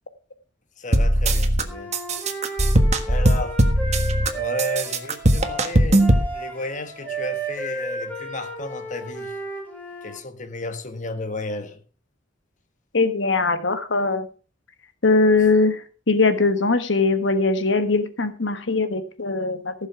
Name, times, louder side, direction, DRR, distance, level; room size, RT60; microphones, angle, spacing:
voice 1, 0.8-1.9 3.1-3.6 4.3-9.3 10.0-11.8, left 2 dB, 40° left, 1.4 m, -33 dB
sound 1, 0.9-1.6 1.9-4.3 4.6-6.3, right 1 dB, 35° right, 1.5 m, -18 dB
Wind instrument woodwind instrument, 1.7-10.2, right 3 dB, 10° left, 4.8 m, -33 dB
voice 2, 12.9-14.3 15.0-19.7, left 3 dB, 70° left, 1.4 m, -21 dB
15.0 x 7.2 x 5.9 m
head